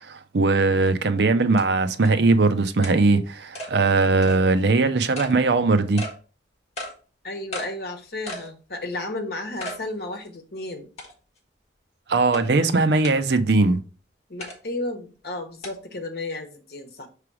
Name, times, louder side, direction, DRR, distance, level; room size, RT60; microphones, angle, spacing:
voice 1, 0.0-6.0 12.1-13.8, right 3 dB, 65° right, 0.6 m, -20 dB
sound 1, 0.9-1.0 1.6-1.7 2.0-2.1 2.8-3.0 3.5-3.7 4.2-4.4 5.1-5.3 6.0-6.1 6.8-6.9 7.5-7.7 8.3-8.5 8.9-9.0 9.6-9.8 10.2-10.3 11.0-11.4 12.3-12.4 13.0-13.2 14.4-14.6 15.6-15.7, equal, 35° left, 1.4 m, -34 dB
voice 2, 7.2-10.9 14.3-17.1, left 2 dB, 55° left, 1.1 m, -33 dB
5.9 x 3.3 x 4.8 m
head